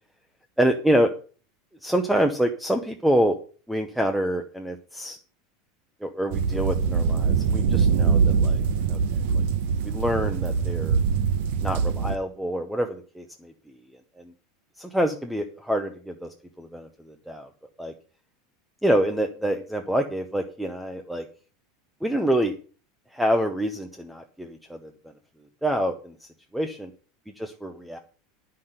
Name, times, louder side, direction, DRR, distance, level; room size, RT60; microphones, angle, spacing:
voice 1, 0.6-1.1 1.8-3.4 3.7-5.2 6.0-8.6 8.9-9.0 9.3-9.4 9.8-11.0 11.6-13.5 14.8-17.5 17.8-17.9 18.8-21.3 22.0-22.5 23.1-24.9 25.6-26.1 26.5-26.7 27.4-28.0, right 1 dB, ahead, 5 dB, 0.7 m, -26 dB
sound 1, 6.3-12.2, right 6 dB, 55° right, 0.9 m, -23 dB
10.5 x 5.7 x 7.9 m, 0.40 s
supercardioid pair, 175°, 0 cm